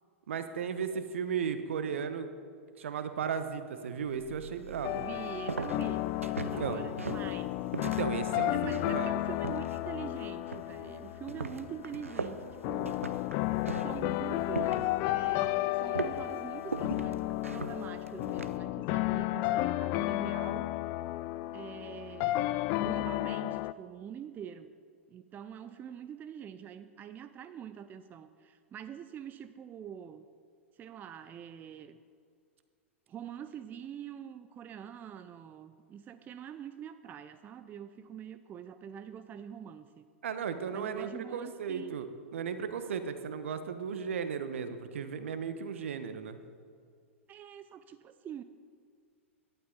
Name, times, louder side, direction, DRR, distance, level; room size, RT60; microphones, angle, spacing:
voice 1, 0.3-2.3 2.8-5.1 6.4-6.8 7.8-9.1 40.2-46.4, right 7 dB, 70° right, 10 dB, 1.2 m, -35 dB
sound 1, 4.0-18.6, right 4 dB, 90° right, 0.7 m, -41 dB
sound 2, 4.8-23.7, left 17 dB, 45° left, 0.4 m, -33 dB
voice 2, 4.9-7.5 8.5-13.0 13.8-20.7 21.5-24.7 25.1-30.3 30.8-32.0 33.1-40.1 40.7-42.0 47.3-48.4, right 8 dB, 25° right, 11 dB, 0.5 m, -45 dB
17.5 x 12.0 x 4.0 m, 2.2 s
figure-of-eight pair, 100°, 7 cm